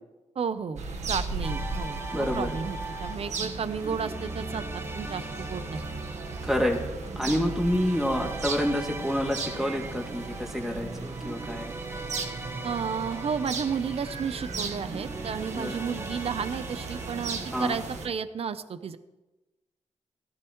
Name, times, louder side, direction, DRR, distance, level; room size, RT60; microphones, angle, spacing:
voice 1, 0.4-0.8 1.1-5.8 12.6-19.0, right 6 dB, 60° right, 12 dB, 0.7 m, -32 dB
sound 1, 0.8-18.1, right 4 dB, 85° right, 1.4 m, -37 dB
sound 2, 1.4-18.1, right 2 dB, 20° right, 1.2 m, -40 dB
voice 2, 2.1-2.5 6.4-6.8 7.2-11.7 15.5-15.7 17.5-17.8, equal, 5° right, 0 dB, 2.5 m, -28 dB
18.0 x 14.5 x 3.1 m, 1.1 s
wide cardioid pair, 105°, 11 cm